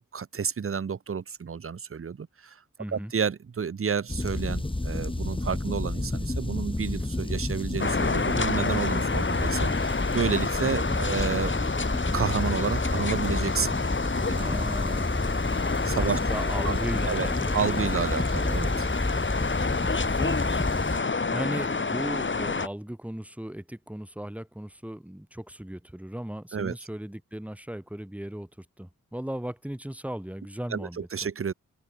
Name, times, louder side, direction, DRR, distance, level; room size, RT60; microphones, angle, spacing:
voice 1, 0.1-2.6 2.9-11.5 12.1-13.8 14.3-14.4 15.8-16.2 16.6-16.8 17.1-17.3 17.5-18.9 26.5-26.8 30.7-31.5, right 6 dB, 40° right, 0.9 m, -30 dB
voice 2, 2.8-3.1 14.3-15.3 16.0-18.0 20.0-20.9 21.3-31.0, right 1 dB, 5° right, 1.6 m, -37 dB
sound 1, 4.1-21.0, left 2 dB, 15° left, 2.1 m, -30 dB
sound 2, 7.8-22.7, left 4 dB, 35° left, 1.7 m, -29 dB
open air
cardioid pair, 60°, 33 cm